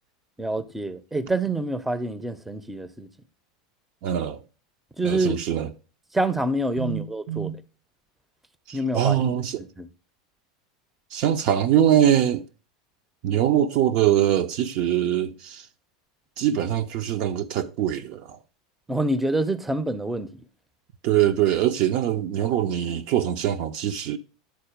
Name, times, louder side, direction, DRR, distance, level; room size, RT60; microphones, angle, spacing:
voice 1, 0.4-3.1 5.0-5.4 6.1-7.6 8.7-9.1 9.8-9.9 18.9-20.4, right 1 dB, 5° right, 0.7 m, -26 dB
voice 2, 4.0-4.4 5.0-5.7 6.8-7.6 8.7-9.7 11.1-12.4 13.2-15.7 16.4-18.4 21.0-24.2, right 11 dB, 50° right, 0.6 m, -23 dB
10.5 x 4.2 x 5.0 m
figure-of-eight pair, 80°, 2 cm